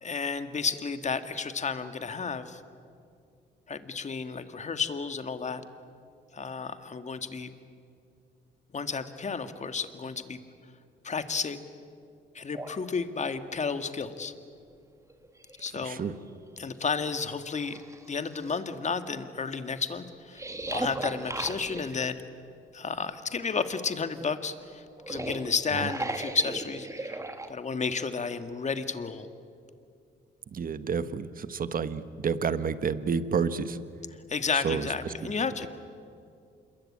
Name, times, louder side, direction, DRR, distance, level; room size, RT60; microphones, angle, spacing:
voice 1, 0.0-2.6 3.7-5.6 6.3-7.5 8.7-10.4 11.0-11.6 12.4-14.3 15.6-16.0 16.6-17.8 18.1-20.4 20.7-22.2 22.7-27.1 27.5-29.3 34.3-35.7, left 5 dB, 35° left, 10 dB, 1.8 m, -32 dB
sound 1, 12.5-12.8 14.6-14.7 15.1-16.1 16.7-16.8 17.4-18.6 20.3-22.1 24.9-27.5, right 2 dB, 15° right, 2.1 m, -36 dB
voice 2, 15.8-16.2 30.5-33.8 34.5-35.1, right 6 dB, 45° right, 13 dB, 1.4 m, -30 dB
27.0 x 22.0 x 8.8 m, 2.4 s
cardioid pair, 90°, 20 cm